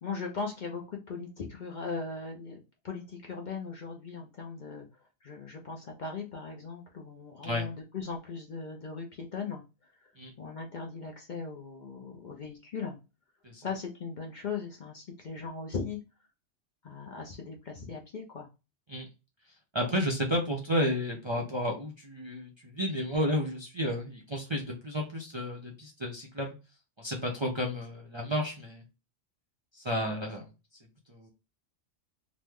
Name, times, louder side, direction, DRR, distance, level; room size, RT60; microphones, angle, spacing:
voice 1, 0.0-10.1 10.4-13.0 13.6-16.0 16.8-18.5, left 5 dB, 50° left, 1 dB, 0.6 m, -39 dB
voice 2, 19.7-26.6 27.0-28.8 29.7-30.5 31.1-31.3, equal, 35° right, 0 dB, 0.5 m, -32 dB
3.0 x 2.0 x 3.4 m, 0.28 s
omnidirectional pair, 1.2 m